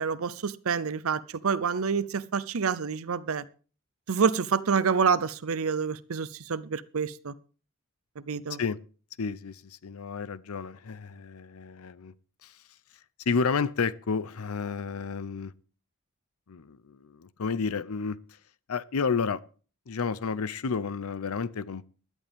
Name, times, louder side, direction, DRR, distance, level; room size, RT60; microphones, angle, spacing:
voice 1, 0.0-3.4 4.1-7.3 8.3-8.6, right 6 dB, 65° right, 0.6 m, -27 dB
voice 2, 9.2-12.1 12.4-12.5 13.3-15.5 16.5-18.2 18.7-19.4 19.9-21.8, left 5 dB, 70° left, 0.6 m, -31 dB
16.0 x 11.0 x 3.5 m
head